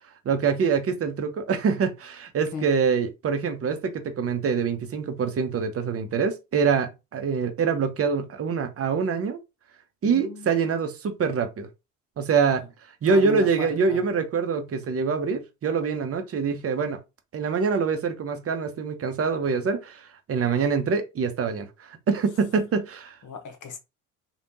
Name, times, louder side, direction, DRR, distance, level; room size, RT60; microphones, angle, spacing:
voice 1, 0.2-9.4 10.0-11.7 12.2-12.6 13.0-17.0 17.3-23.1, right 5 dB, 35° right, 0.8 m, -25 dB
voice 2, 10.0-10.5 12.3-12.7 13.1-14.1 23.2-23.8, left 6 dB, 45° left, 1.1 m, -36 dB
3.3 x 2.5 x 2.8 m
hypercardioid pair, 60°, 43 cm